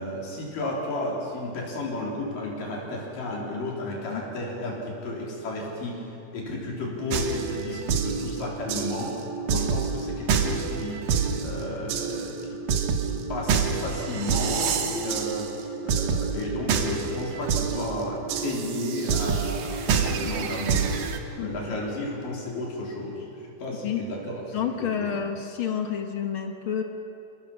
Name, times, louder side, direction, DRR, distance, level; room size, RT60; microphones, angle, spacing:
voice 1, 0.0-6.1 6.3-9.2 9.5-11.0 11.4-12.4 13.1-15.5 15.8-20.9 21.3-23.3 23.6-25.3, left 2 dB, 80° left, -2 dB, 5.2 m, -33 dB
sound 1, 7.1-21.2, right 6 dB, 75° right, 2.7 m, -27 dB
voice 2, 21.4-21.8 23.8-24.0 24.5-26.8, left 8 dB, 60° left, 5 dB, 1.4 m, -29 dB
26.5 x 19.0 x 5.9 m, 2.9 s
omnidirectional pair, 3.8 m